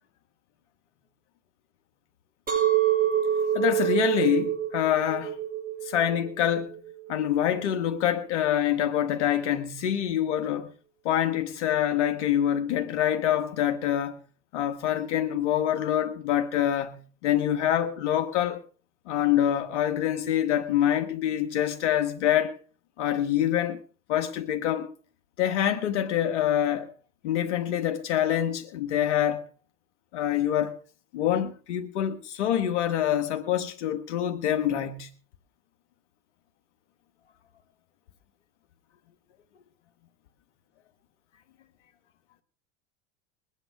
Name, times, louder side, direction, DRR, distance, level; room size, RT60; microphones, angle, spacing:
Chink clink, 2.5-7.6, right 11 dB, 25° right, 6.5 m, -27 dB
voice 1, 3.5-5.3 5.8-6.7 7.1-10.7 11.0-14.2 14.5-18.6 19.1-22.6 23.0-23.8 24.1-24.9 25.4-26.9 27.2-29.4 30.1-30.7 31.1-35.1, left 10 dB, 80° left, 1.4 m, -26 dB
21.0 x 9.1 x 4.8 m
hypercardioid pair, 100°, 34 cm